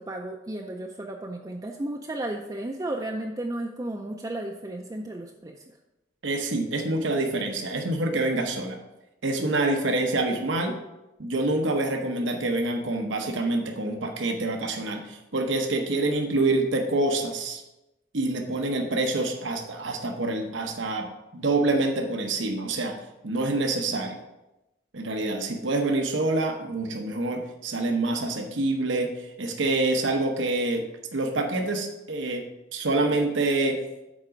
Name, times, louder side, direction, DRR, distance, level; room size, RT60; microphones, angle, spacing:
voice 1, 0.0-5.8, right 1 dB, 20° right, 1 dB, 0.4 m, -34 dB
voice 2, 6.2-8.8 9.2-10.7 11.2-17.6 18.1-23.0 23.2-24.2 24.9-30.8 31.1-32.5 32.7-33.8, right 2 dB, 85° right, 3 dB, 0.9 m, -26 dB
7.3 x 4.8 x 5.1 m, 0.97 s
head